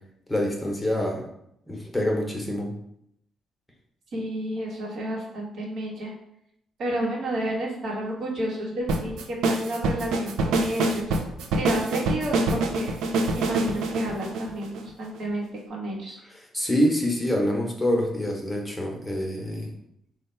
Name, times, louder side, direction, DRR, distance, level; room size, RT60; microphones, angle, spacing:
voice 1, 0.3-1.3 1.7-2.7 16.3-19.7, equal, 10° left, -1 dB, 0.9 m, -26 dB
voice 2, 4.1-6.1 6.8-11.2 11.5-12.9 13.4-16.2, right 1 dB, 65° right, -2 dB, 1.1 m, -31 dB
sound 1, 8.9-15.2, right 2 dB, 85° right, 0.4 m, -25 dB
3.2 x 2.3 x 4.3 m, 0.75 s
cardioid pair, 90°, 0 cm